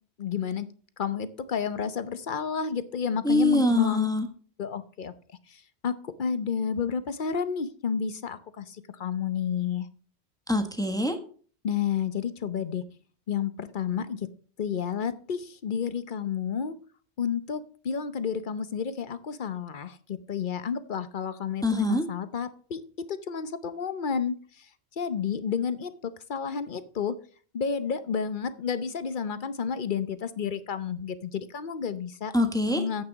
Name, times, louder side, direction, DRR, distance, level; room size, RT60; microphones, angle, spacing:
voice 1, 0.2-0.7 1.0-4.1 4.6-5.1 5.5-9.9 11.6-12.8 13.3-14.3 14.6-16.8 17.2-24.7 25.0-27.2 27.5-32.3 32.8-33.0, left 7 dB, 50° left, 12 dB, 0.9 m, -31 dB
voice 2, 3.2-4.3 10.5-11.2 21.6-22.0 32.3-32.8, left 1 dB, 5° left, 6 dB, 1.2 m, -24 dB
9.7 x 8.5 x 4.0 m, 0.42 s
omnidirectional pair, 1.1 m